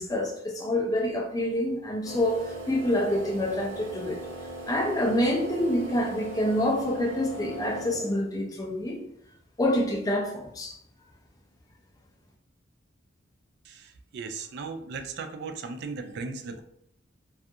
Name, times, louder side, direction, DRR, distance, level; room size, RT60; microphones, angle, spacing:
voice 1, 0.0-4.2 4.7-9.0 9.6-10.8, left 1 dB, 20° left, 0.4 m, -27 dB
sound 1, 2.0-8.4, right 1 dB, 75° right, 0.7 m, -39 dB
voice 2, 13.6-16.6, right 4 dB, 55° right, 0.3 m, -37 dB
2.4 x 2.3 x 2.6 m
head